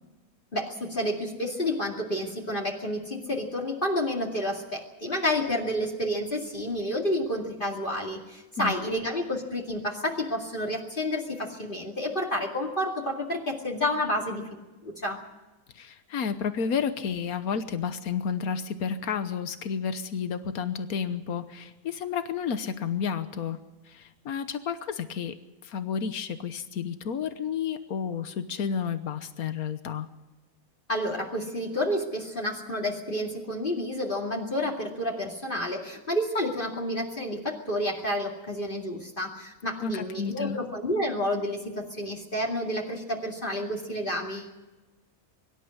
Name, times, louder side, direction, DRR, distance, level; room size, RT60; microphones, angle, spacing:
voice 1, 0.5-15.2 30.9-44.5, left 1 dB, 35° left, -1 dB, 2.5 m, -30 dB
voice 2, 8.6-9.0 15.7-23.6 23.8-25.4 25.6-30.1 39.8-40.6, left 6 dB, 90° left, 10 dB, 1.5 m, -31 dB
24.0 x 12.5 x 9.7 m, 1.1 s
omnidirectional pair, 1.5 m